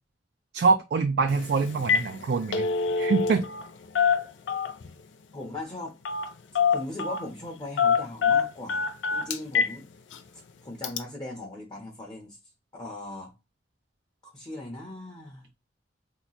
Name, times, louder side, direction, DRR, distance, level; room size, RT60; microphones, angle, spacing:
voice 1, 0.5-2.7 3.0-3.4, right 4 dB, 60° right, 0.4 m, -24 dB
Telephone, 1.3-1.4 1.7-2.1 2.4-3.7 3.9-4.9 6.0-6.3 6.5-7.2 7.8-9.7 10.1-10.2 10.8-11.0, left 6 dB, 85° left, 0.4 m, -25 dB
voice 2, 5.3-6.0 6.7-9.9 10.6-12.4 12.7-13.3 14.2-15.5, left 1 dB, 25° left, 0.8 m, -39 dB
2.9 x 2.1 x 4.0 m
head